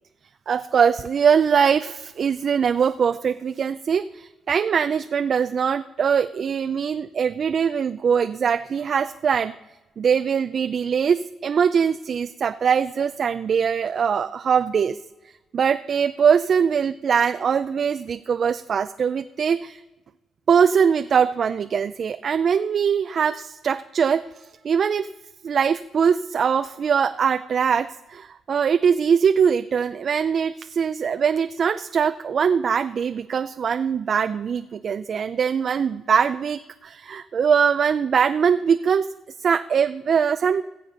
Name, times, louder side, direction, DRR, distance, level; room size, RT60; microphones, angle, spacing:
voice 1, 0.5-9.5 10.0-15.0 15.5-19.8 20.5-25.1 25.4-39.1 39.4-40.6, right 7 dB, 50° right, 10 dB, 0.5 m, -22 dB
16.5 x 7.6 x 6.9 m, 1.0 s
cardioid pair, 90°, 0 cm